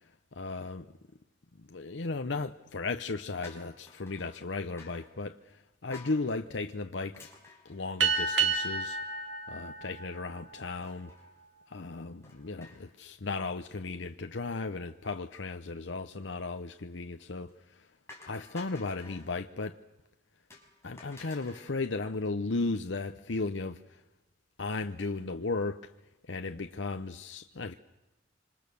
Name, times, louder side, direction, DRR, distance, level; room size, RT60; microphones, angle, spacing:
voice 1, 0.3-0.9 1.6-7.3 7.6-9.0 9.5-11.1 11.7-17.9 18.3-19.8 20.8-24.0 24.6-25.9 26.3-27.7, left 3 dB, 90° left, 0.9 m, -35 dB
sound 1, 3.4-4.4 4.8-5.1 5.9-6.2 7.1-8.5 8.9-9.0 9.2-9.3 10.8-11.3 12.2-13.0 13.3-13.6 17.2-17.5 18.1-19.3 20.5-21.8, left 3 dB, 15° left, 6.0 m, -52 dB
sound 2, 8.0-10.9, right 5 dB, 85° right, 2.8 m, -31 dB
27.0 x 26.0 x 7.0 m
head